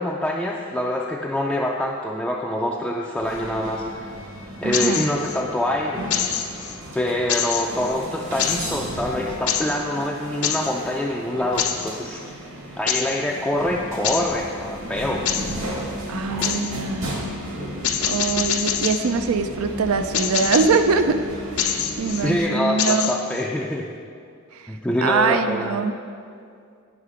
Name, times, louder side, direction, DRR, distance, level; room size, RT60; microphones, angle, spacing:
voice 1, 0.0-4.1 4.6-6.0 6.9-12.2 12.8-15.3 22.2-23.9 24.7-25.7, left 1 dB, 5° left, -3 dB, 0.3 m, -25 dB
sound 1, 3.2-22.4, equal, 65° right, 1.4 m, -34 dB
voice 2, 4.6-5.1 16.1-17.1 17.8-21.2 21.6-23.1 24.5-24.7 25.0-25.9, right 4 dB, 80° right, 9 dB, 0.5 m, -23 dB
sound 2, 4.7-5.4 6.1-6.8 7.3-7.9 8.4-8.7 9.5-9.8 10.4-10.7 11.6-11.9 12.9-13.2 14.0-14.4 15.3-15.6 16.4-16.7 17.8-19.1 20.1-20.8 21.6-22.3 22.8-23.4, left 8 dB, 80° left, 0.6 m, -25 dB
9.6 x 5.6 x 4.9 m, 2.3 s
head